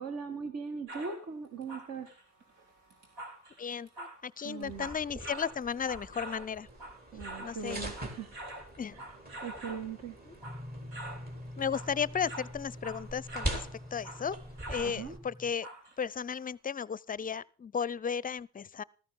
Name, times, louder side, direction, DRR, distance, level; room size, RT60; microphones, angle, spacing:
voice 1, 0.0-2.1 4.4-4.9 7.1-8.3 8.9-9.1 9.4-10.2 14.8-15.2, right 5 dB, 55° right, 1.9 m, -40 dB
sound 1, 0.9-1.2 1.6-7.6 7.9-9.9 10.3-10.7 10.9-11.3 11.6-13.7 14.0-14.3 14.6-15.0 15.6-16.0 16.5-16.6, right 1 dB, 90° right, 4.2 m, -45 dB
voice 2, 3.6-6.7 7.4-7.9 8.8-9.0 10.3-10.4 11.6-14.4 14.7-15.7 16.0-18.8, left 7 dB, 30° left, 0.5 m, -35 dB
sound 2, 4.6-15.2, right 1 dB, 30° right, 3.5 m, -43 dB
sound 3, 10.4-15.5, left 1 dB, 10° right, 1.3 m, -46 dB
14.0 x 14.0 x 3.8 m
cardioid pair, 90°, 30 cm